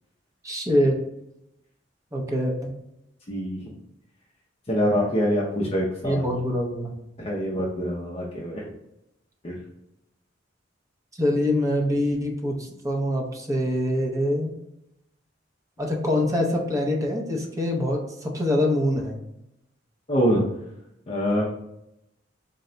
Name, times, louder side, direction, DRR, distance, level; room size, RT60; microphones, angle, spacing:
voice 1, 0.4-1.0 2.1-2.7 6.0-6.9 11.2-14.5 15.8-19.2, left 1 dB, 20° right, 0 dB, 0.6 m, -24 dB
voice 2, 3.3-3.7 4.7-6.3 7.2-8.7 9.4-9.6 20.1-20.5 21.1-21.5, equal, 35° left, -4 dB, 0.5 m, -25 dB
4.1 x 2.2 x 3.8 m, 0.82 s
head